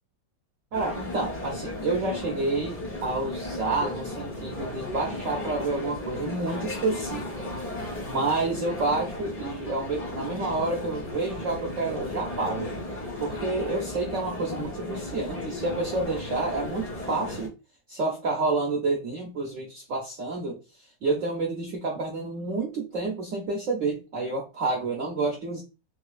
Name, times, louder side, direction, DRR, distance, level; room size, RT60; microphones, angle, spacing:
sound 1, 0.7-17.5, left 1 dB, 45° left, 0.4 m, -35 dB
voice 1, 0.7-7.5 8.0-12.7 13.2-17.5 17.9-20.6 21.0-25.6, right 3 dB, 80° right, 0 dB, 0.7 m, -29 dB
4.0 x 2.5 x 2.3 m, 0.30 s
omnidirectional pair, 2.2 m